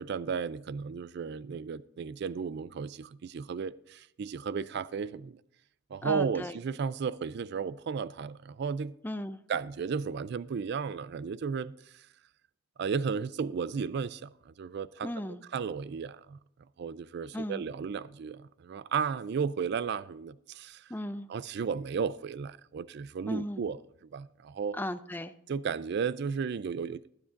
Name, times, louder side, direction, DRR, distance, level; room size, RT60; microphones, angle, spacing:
voice 1, 0.0-5.4 5.9-8.9 9.5-12.1 12.8-16.4 16.8-20.9 21.3-23.8 24.1-24.8 25.5-27.0, right 6 dB, 55° right, 0.4 m, -34 dB
voice 2, 6.0-6.5 9.0-9.4 15.0-15.4 17.3-17.6 20.9-21.3 23.3-23.6 24.8-25.3, left 1 dB, 10° left, 0.5 m, -36 dB
21.0 x 9.7 x 2.6 m
head